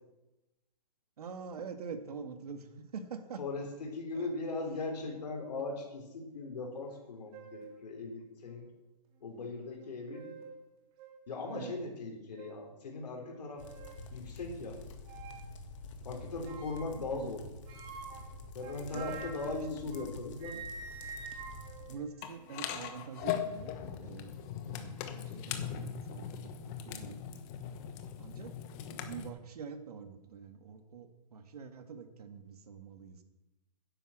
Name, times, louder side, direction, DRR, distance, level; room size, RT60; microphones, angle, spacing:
voice 1, 1.2-3.4 11.5-11.7 17.1-17.3 18.9-20.1 21.9-24.3 24.7-27.2 28.2-28.5 28.9-33.2, right 6 dB, 70° right, 8 dB, 1.9 m, -45 dB
voice 2, 3.4-8.7 9.2-10.3 11.3-13.7 14.1-14.8 16.0-17.4 18.5-20.6, left 3 dB, 75° left, 0 dB, 3.9 m, -39 dB
sound 1, 6.9-7.0 7.3-7.7 8.4-8.5 9.8-10.6 11.0-11.1 11.6-11.8 12.4-12.6 13.3-14.0 15.0-15.5 16.4-17.0 17.7-20.1 20.4-22.7, right 5 dB, 25° right, 2.2 m, -48 dB
sound 2, 13.6-22.0, left 3 dB, 50° left, 2.1 m, -48 dB
sound 3, 22.2-29.3, left 9 dB, 25° left, 1.2 m, -40 dB
10.5 x 10.0 x 7.4 m, 0.98 s
hypercardioid pair, 165°, 21 cm